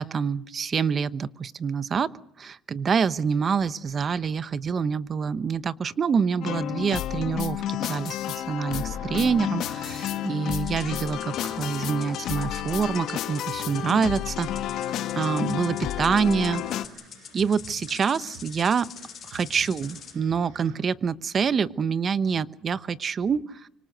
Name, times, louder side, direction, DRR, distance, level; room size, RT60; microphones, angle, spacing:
voice 1, 0.0-2.1 2.4-14.5 15.1-16.6 17.3-18.9 19.2-23.7, right 6 dB, 35° right, 15 dB, 0.9 m, -26 dB
sound 1, 6.4-16.9, left 11 dB, 65° left, 1.4 m, -31 dB
sound 2, 8.5-20.8, right 4 dB, 80° right, 7.5 m, -49 dB
sound 3, 10.5-20.2, left 8 dB, 45° left, 3.6 m, -46 dB
25.0 x 25.0 x 6.7 m, 0.70 s
cardioid pair, 110°, 0 cm